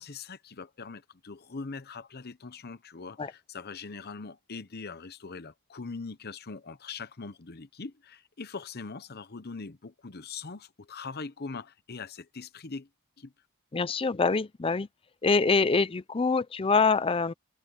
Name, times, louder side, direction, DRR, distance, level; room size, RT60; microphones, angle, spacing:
voice 1, 0.0-12.9 13.2-13.3, left 4 dB, 45° left, 0.9 m, -41 dB
voice 2, 13.7-14.9 15.2-17.3, left 4 dB, 25° left, 0.5 m, -25 dB
head